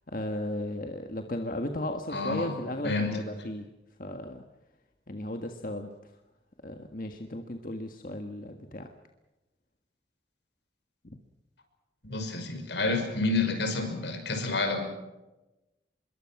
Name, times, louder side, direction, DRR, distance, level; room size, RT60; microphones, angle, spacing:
voice 1, 0.1-3.7 4.0-4.4 5.1-5.9 6.6-8.9 11.0-11.2, left 1 dB, 50° left, 5 dB, 1.7 m, -35 dB
voice 2, 2.1-2.6 2.8-3.1 12.0-14.8, left 3 dB, 80° left, 6 dB, 5.9 m, -29 dB
25.5 x 23.0 x 6.0 m, 1.0 s
head